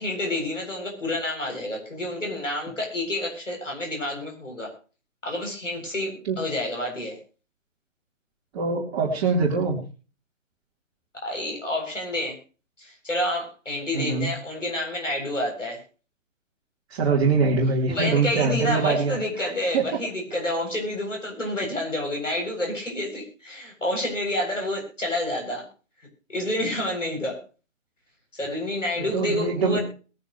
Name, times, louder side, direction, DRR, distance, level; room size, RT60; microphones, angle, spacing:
voice 1, 0.0-4.7 5.2-7.2 11.1-12.4 12.8-15.8 17.9-25.7 26.3-27.4 28.4-29.8, left 1 dB, 75° left, 1 dB, 7.9 m, -29 dB
voice 2, 8.5-9.8 13.9-14.3 16.9-19.1 19.7-19.8 29.0-29.8, right 4 dB, 25° right, -4 dB, 3.8 m, -23 dB
22.0 x 11.0 x 3.2 m, 0.36 s
figure-of-eight pair, 140°, 38 cm